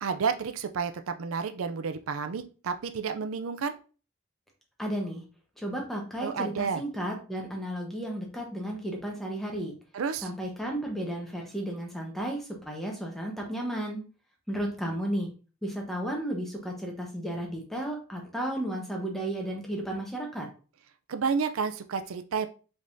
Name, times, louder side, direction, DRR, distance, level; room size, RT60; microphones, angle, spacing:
voice 1, 0.0-3.8 6.2-6.8 9.9-10.3 21.1-22.5, right 5 dB, 90° right, 9 dB, 0.5 m, -30 dB
voice 2, 4.8-5.2 5.6-9.7 10.2-14.0 14.5-15.3 15.6-20.5, right 1 dB, ahead, 0 dB, 0.9 m, -33 dB
5.2 x 3.6 x 2.6 m, 0.36 s
head